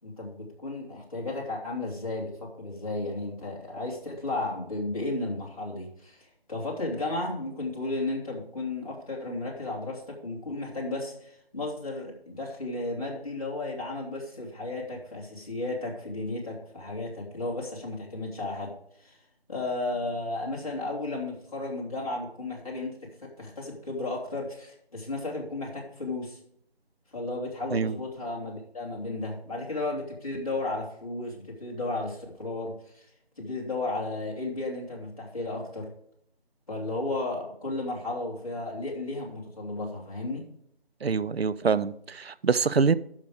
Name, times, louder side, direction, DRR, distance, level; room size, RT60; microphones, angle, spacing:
voice 1, 0.0-18.7 19.0-19.2 19.5-26.4 27.1-33.0 33.4-35.9 36.7-40.4, left 2 dB, 35° left, -4 dB, 3.3 m, -34 dB
voice 2, 41.0-42.9, right 5 dB, 75° right, 16 dB, 0.7 m, -25 dB
12.0 x 5.5 x 5.0 m, 0.70 s
figure-of-eight pair, 175°, 31 cm